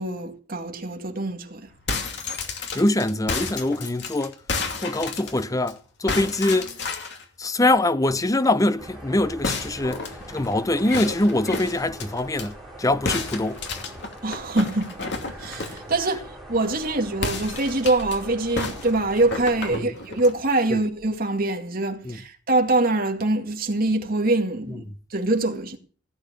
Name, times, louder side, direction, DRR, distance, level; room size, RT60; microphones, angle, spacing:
voice 1, 0.0-1.7 14.2-14.9 15.4-24.8 25.1-25.8, right 2 dB, 45° right, 2.2 m, -24 dB
sound 1, 1.7-5.7 6.1-7.2 9.4-12.5 13.1-15.9 17.1-18.2 18.6-20.4, left 4 dB, 60° left, 2.6 m, -31 dB
voice 2, 2.7-4.3 4.8-6.7 7.4-13.6 19.7-20.0 20.7-20.8 22.0-22.2 24.7-24.8, left 1 dB, 15° left, 0.7 m, -23 dB
sound 2, 8.8-19.8, right 1 dB, ahead, 6.1 m, -42 dB
16.5 x 8.9 x 6.6 m
head